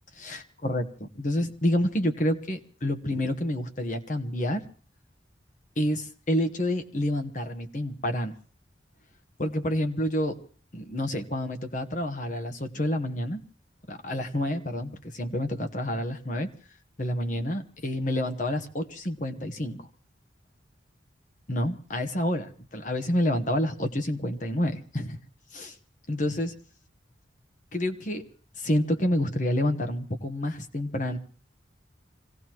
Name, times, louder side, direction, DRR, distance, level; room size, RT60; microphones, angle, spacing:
voice 1, 0.2-4.7 5.8-8.3 9.4-10.4 10.7-13.4 13.9-16.5 17.0-19.8 21.5-25.2 25.5-25.7 26.1-26.6 27.7-28.2 28.6-31.2, left 1 dB, 45° left, 6 dB, 1.1 m, -28 dB
26.0 x 17.0 x 3.0 m, 0.43 s
head